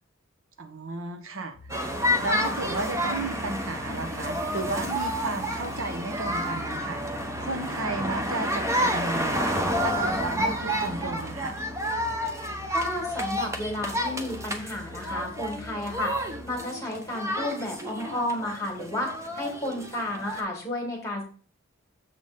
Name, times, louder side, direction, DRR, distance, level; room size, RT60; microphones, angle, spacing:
voice 1, 0.6-1.5 2.2-7.0 7.4-11.6, right 3 dB, 85° right, 8 dB, 0.9 m, -33 dB
sound 1, 1.5-16.6, left 1 dB, 50° right, 4.2 m, -45 dB
sound 2, 1.7-20.4, equal, 15° right, 0.8 m, -30 dB
voice 2, 12.7-21.2, left 1 dB, 15° left, 0 dB, 2.2 m, -32 dB
7.1 x 4.1 x 5.1 m, 0.40 s
head